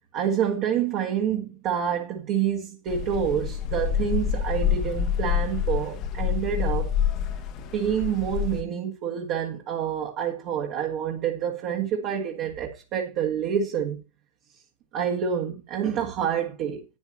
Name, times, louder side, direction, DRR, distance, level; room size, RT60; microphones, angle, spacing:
voice 1, 0.1-6.9 7.7-14.0 14.9-16.9, right 8 dB, 40° right, 1.9 m, -27 dB
sound 1, 2.9-8.6, left 9 dB, 40° left, 1.3 m, -27 dB
11.5 x 9.8 x 2.8 m
figure-of-eight pair, 90°, 0 cm